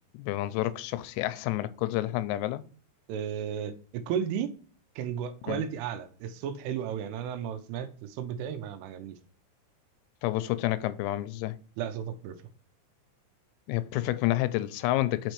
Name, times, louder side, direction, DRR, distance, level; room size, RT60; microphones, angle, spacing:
voice 1, 0.1-2.6 5.5-5.6 10.2-11.6 13.7-15.3, left 15 dB, 90° left, 3.2 m, -29 dB
voice 2, 3.1-4.5 5.0-9.2 11.8-12.4, right 8 dB, 85° right, 3.1 m, -34 dB
6.6 x 5.2 x 3.0 m
omnidirectional pair, 5.8 m